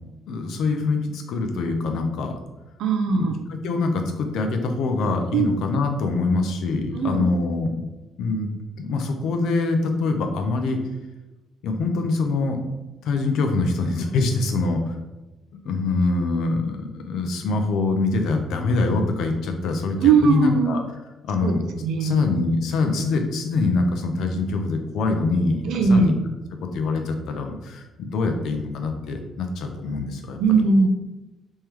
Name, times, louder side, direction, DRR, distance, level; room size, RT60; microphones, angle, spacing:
voice 1, 0.3-2.3 3.1-7.8 8.2-8.5 8.8-10.8 11.6-12.6 13.1-15.0 15.6-20.8 21.3-21.6 22.0-26.2 26.6-30.4, left 3 dB, 75° left, 5 dB, 0.5 m, -24 dB
voice 2, 2.8-3.3 5.3-5.5 6.9-7.2 20.0-20.8 21.4-21.5 21.8-22.1 25.7-26.1 30.4-30.9, right 5 dB, 85° right, 5 dB, 0.5 m, -19 dB
3.6 x 3.2 x 3.0 m, 1.1 s
cardioid pair, 170°, 0 cm